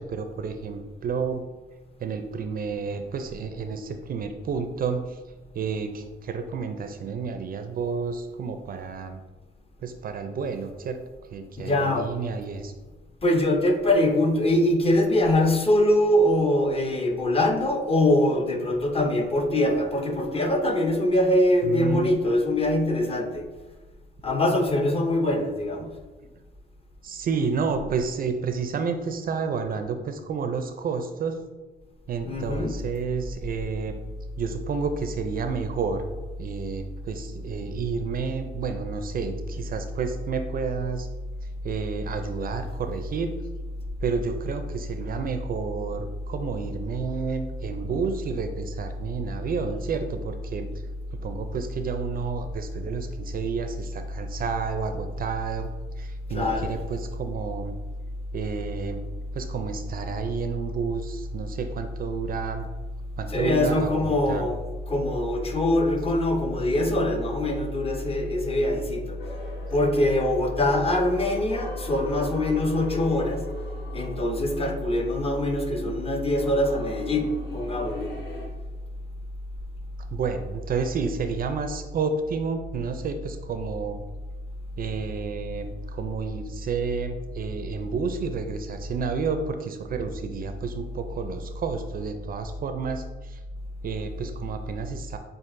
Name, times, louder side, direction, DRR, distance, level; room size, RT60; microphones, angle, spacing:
voice 1, 0.0-1.5 2.0-5.2 5.5-9.2 9.8-11.0 11.3-12.7 21.6-22.1 27.0-31.4 32.1-34.0 34.4-36.0 36.4-41.1 41.6-43.3 44.0-50.7 51.1-55.7 56.0-57.7 58.3-59.0 59.3-62.7 63.2-64.5 80.1-84.0 84.8-93.4 93.8-95.2, right 5 dB, 45° right, 8 dB, 0.4 m, -30 dB
voice 2, 11.6-12.1 13.2-23.5 24.2-25.9 32.3-32.8 56.3-56.8 63.3-69.2 69.7-73.5 73.9-78.1, left 1 dB, 30° left, 3 dB, 0.6 m, -23 dB
sound 1, 69.2-78.5, equal, 60° left, 1.2 m, -41 dB
7.3 x 2.4 x 2.5 m, 1.2 s
cardioid pair, 90°, 20 cm